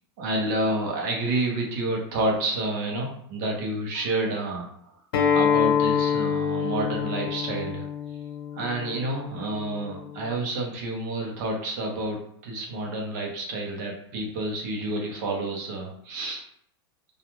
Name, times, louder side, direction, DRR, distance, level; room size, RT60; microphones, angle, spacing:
voice 1, 0.2-4.7 5.3-7.9 8.5-16.4, right 2 dB, 45° right, -1 dB, 0.7 m, -29 dB
Acoustic guitar, 5.1-10.3, left 7 dB, 70° left, 0.6 m, -26 dB
2.3 x 2.2 x 3.0 m, 0.68 s
supercardioid pair, 175°, 13 cm